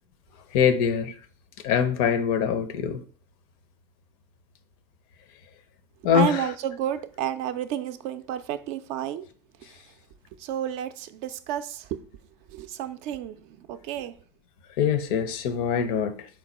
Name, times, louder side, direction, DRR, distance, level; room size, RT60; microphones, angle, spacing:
voice 1, 0.5-1.1 1.6-3.0 6.0-6.5 14.8-16.3, left 7 dB, 65° left, 0.5 m, -23 dB
voice 2, 6.1-9.3 9.6-9.8 10.4-12.0 12.5-14.1, right 10 dB, 60° right, 0.4 m, -31 dB
4.3 x 2.2 x 4.1 m
hypercardioid pair, 80°, 14 cm